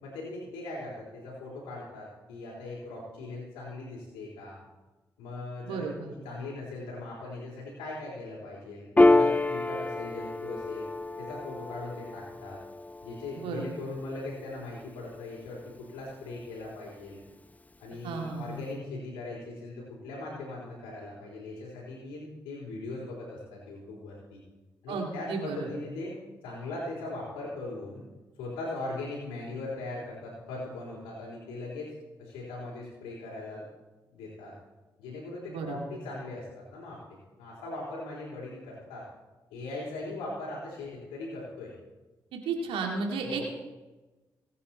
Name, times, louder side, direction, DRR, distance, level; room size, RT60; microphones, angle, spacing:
voice 1, 0.0-4.6 5.2-10.9 11.2-12.6 13.0-17.2 17.8-24.4 24.8-26.2 26.4-28.0 28.4-31.9 32.2-33.7 34.1-34.5 35.0-39.0 39.5-41.7 43.2-43.4, left 2 dB, 90° left, -6 dB, 3.9 m, -40 dB
voice 2, 5.6-6.1 13.3-13.9 18.0-18.7 24.9-25.7 35.5-35.8 42.3-43.4, right 4 dB, 85° right, 1 dB, 2.3 m, -34 dB
Piano, 9.0-15.9, left 2 dB, 15° left, 0.9 m, -28 dB
26.0 x 9.4 x 4.4 m, 1.1 s
supercardioid pair, 45°, 9 cm